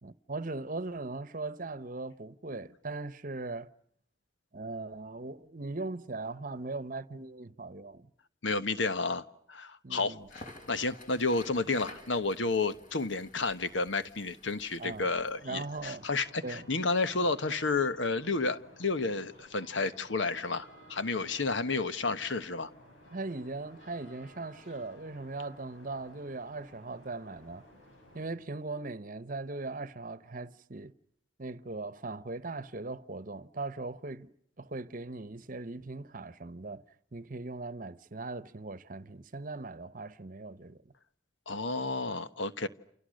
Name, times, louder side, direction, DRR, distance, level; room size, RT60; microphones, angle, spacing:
voice 1, 0.0-3.7 4.5-8.1 9.8-10.3 14.8-15.1 15.4-16.0 16.4-16.7 23.1-27.6 28.1-30.9 31.4-34.3 34.6-36.8 37.1-40.9, right 3 dB, 45° right, 1.0 m, -39 dB
voice 2, 8.4-9.2 9.5-22.7 41.5-42.7, left 3 dB, 70° left, 1.3 m, -31 dB
Crackle, 10.2-15.4, left 2 dB, 40° left, 4.7 m, -52 dB
sound 1, 15.2-28.3, equal, 90° left, 7.0 m, -56 dB
29.5 x 28.0 x 6.5 m
head